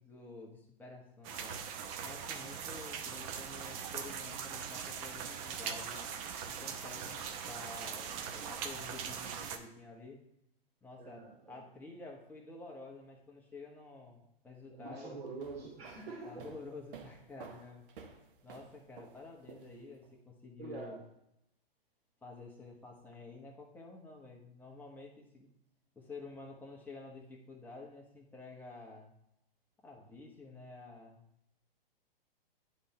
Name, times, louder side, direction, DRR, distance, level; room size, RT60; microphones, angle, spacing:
voice 1, 0.0-1.6 2.0-6.0 6.4-10.2 10.8-15.2 16.2-17.8 18.4-21.0 22.2-25.5 25.9-29.1 29.8-31.2, left 3 dB, 5° left, -1 dB, 1.2 m, -50 dB
sound 1, 1.2-9.6, right 7 dB, 35° right, 0.8 m, -41 dB
voice 2, 11.0-11.6 14.7-16.5 20.6-21.0, right 3 dB, 80° right, -3 dB, 2.3 m, -45 dB
sound 2, 15.3-20.1, right 5 dB, 60° right, 1.1 m, -53 dB
10.0 x 3.6 x 4.3 m, 0.82 s
hypercardioid pair, 130°, 30 cm